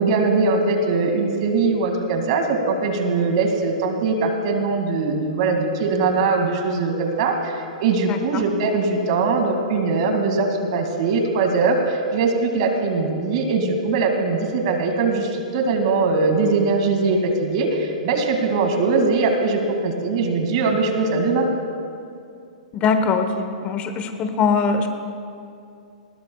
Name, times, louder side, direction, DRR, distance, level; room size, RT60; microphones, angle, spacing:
voice 1, 0.0-21.5, right 3 dB, 50° right, 4 dB, 2.2 m, -21 dB
voice 2, 8.1-8.4 22.7-24.9, left 5 dB, 30° left, 7 dB, 1.1 m, -22 dB
20.0 x 19.5 x 2.3 m, 2.4 s
hypercardioid pair, 120°, 4 cm